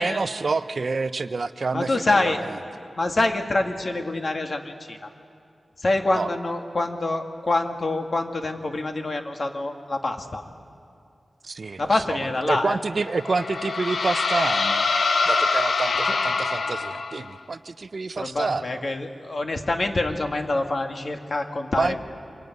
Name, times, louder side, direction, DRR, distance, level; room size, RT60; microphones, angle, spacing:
voice 1, 0.0-2.5 6.1-6.3 11.4-14.9 15.3-18.8 21.8-22.0, right 4 dB, 55° right, 13 dB, 0.8 m, -28 dB
voice 2, 1.7-2.4 2.9-5.1 5.8-10.4 11.8-12.8 16.1-16.2 18.2-22.0, left 2 dB, 45° left, 4 dB, 2.1 m, -26 dB
sound 1, 13.0-17.4, left 4 dB, 65° left, 0.9 m, -24 dB
25.5 x 22.5 x 9.5 m, 2.4 s
wide cardioid pair, 110°, 0 cm